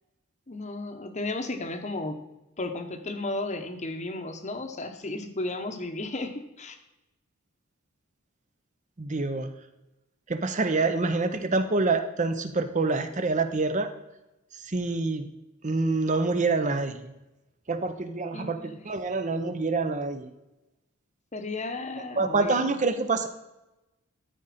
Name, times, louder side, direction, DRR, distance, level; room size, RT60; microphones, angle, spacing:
voice 1, 0.5-2.2 2.6-6.8 18.3-18.8 21.3-22.8, left 2 dB, 30° left, 7 dB, 0.9 m, -34 dB
voice 2, 9.0-9.5 10.3-13.9 14.6-15.3 15.6-17.1 17.7-20.3 22.2-23.3, right 3 dB, 35° right, 9 dB, 0.7 m, -26 dB
13.0 x 5.0 x 4.2 m, 0.98 s
head